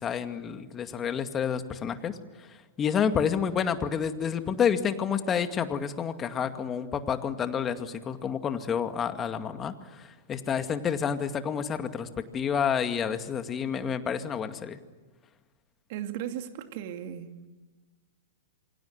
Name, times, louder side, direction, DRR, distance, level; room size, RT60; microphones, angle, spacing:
voice 1, 0.0-14.8, left 7 dB, 25° left, 8 dB, 2.2 m, -29 dB
voice 2, 15.9-17.3, right 10 dB, 50° right, 6 dB, 2.6 m, -36 dB
27.5 x 24.5 x 8.1 m, 1.2 s
figure-of-eight pair, 110°, 0 cm